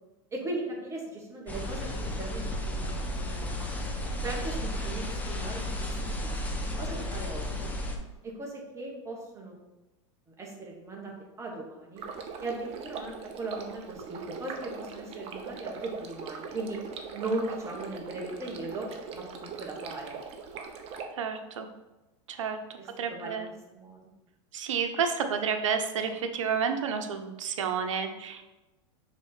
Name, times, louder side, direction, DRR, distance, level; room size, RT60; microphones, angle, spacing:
voice 1, 0.3-3.7 4.2-6.3 6.8-7.7 8.2-9.6 10.3-12.0 12.4-16.8 17.1-20.2 22.8-23.4 23.7-24.1, right 2 dB, 20° right, -1 dB, 1.5 m, -38 dB
sound 1, 1.5-8.0, left 1 dB, 10° left, 0.9 m, -33 dB
Stream, 12.0-21.0, right 5 dB, 40° right, 0.8 m, -41 dB
voice 2, 21.1-21.7 22.3-22.6 23.0-23.5 24.5-28.4, right 6 dB, 90° right, 6 dB, 0.8 m, -30 dB
5.0 x 3.7 x 5.6 m, 1.1 s
supercardioid pair, 125°, 16 cm